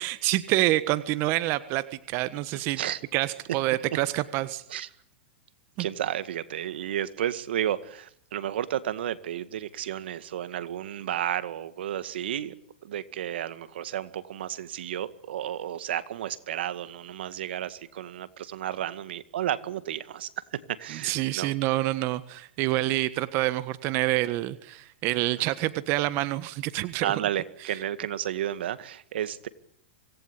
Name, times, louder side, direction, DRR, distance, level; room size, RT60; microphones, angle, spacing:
voice 1, 0.0-2.8 3.1-4.6 5.8-5.9 21.0-27.1, right 17 dB, 40° right, 14 dB, 1.5 m, -27 dB
voice 2, 2.5-3.0 4.7-4.9 5.8-12.5 12.8-21.5 27.0-29.5, right 11 dB, 75° right, 14 dB, 2.0 m, -32 dB
26.0 x 19.0 x 10.0 m, 0.66 s
hypercardioid pair, 135°, 6 cm